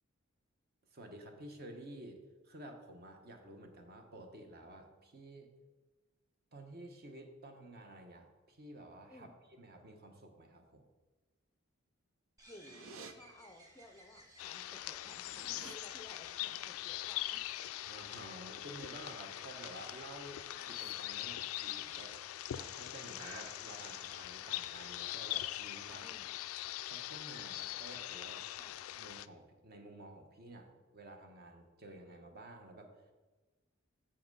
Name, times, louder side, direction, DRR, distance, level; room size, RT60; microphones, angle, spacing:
voice 1, 0.9-5.5 6.5-10.8 17.9-22.2 22.5-26.1 26.9-28.4 29.0-33.1, right 1 dB, 50° right, 4 dB, 1.1 m, -52 dB
sound 1, 12.4-25.6, right 1 dB, 15° right, 1.4 m, -59 dB
voice 2, 12.5-17.4 26.0-26.3 28.6-28.8, left 1 dB, 15° left, 6 dB, 0.5 m, -57 dB
sound 2, 12.6-13.1 14.3-14.4 14.7-15.8 18.9-19.3 19.6-19.9 20.4-20.9, right 5 dB, 85° right, 0.6 m, -55 dB
sound 3, 14.4-29.3, left 14 dB, 80° left, 0.3 m, -42 dB
7.2 x 5.8 x 5.4 m, 1.2 s
head